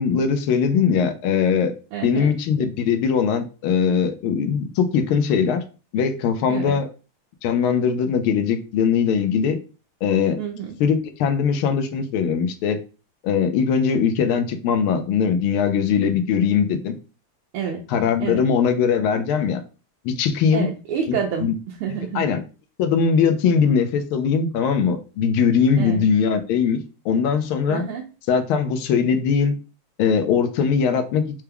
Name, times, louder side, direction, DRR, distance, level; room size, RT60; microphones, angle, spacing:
voice 1, 0.0-1.7 2.0-5.6 5.9-6.9 7.4-9.6 10.0-10.4 10.8-12.8 13.2-16.9 17.9-19.6 20.0-20.7 21.4-21.5 22.1-22.4 22.8-27.8 28.3-29.5 30.0-31.4, left 6 dB, 80° left, 1.4 m, -20 dB
voice 2, 1.9-2.3 6.5-6.8 10.4-10.8 17.5-17.8 18.2-18.4 20.5-22.3 25.8-26.0 27.7-28.1, right 7 dB, 85° right, 1.5 m, -28 dB
4.6 x 2.2 x 3.4 m
omnidirectional pair, 2.4 m